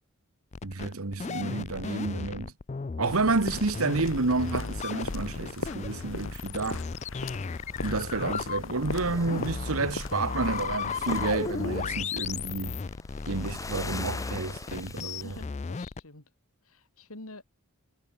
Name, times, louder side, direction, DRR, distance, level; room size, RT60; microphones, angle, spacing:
sound 1, 0.5-16.0, left 5 dB, 30° left, 0.4 m, -35 dB
voice 1, 0.6-2.5 3.0-6.8 7.8-12.8 13.3-15.3, right 3 dB, 80° right, 1.3 m, -30 dB
sound 2, 3.1-12.0, left 3 dB, 65° left, 1.6 m, -40 dB
sound 3, 7.3-8.7 8.9-15.4, left 3 dB, 15° left, 3.3 m, -44 dB
voice 2, 12.7-13.1 15.2-16.3 16.6-17.4, left 2 dB, 85° left, 3.8 m, -48 dB
head